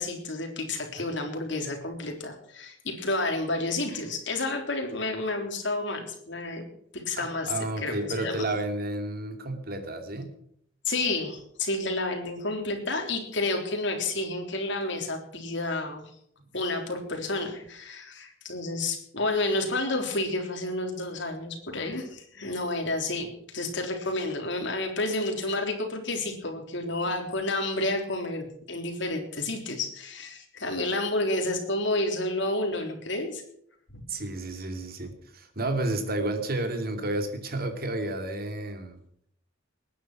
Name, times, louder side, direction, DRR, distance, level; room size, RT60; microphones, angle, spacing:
voice 1, 0.0-6.7 6.9-8.5 10.9-16.1 16.5-33.4 33.9-34.0, left 2 dB, 60° left, 3 dB, 3.6 m, -30 dB
voice 2, 7.2-10.3 22.4-22.5 34.1-39.0, right 2 dB, 50° right, 6 dB, 2.8 m, -31 dB
19.5 x 10.0 x 6.2 m, 0.68 s
head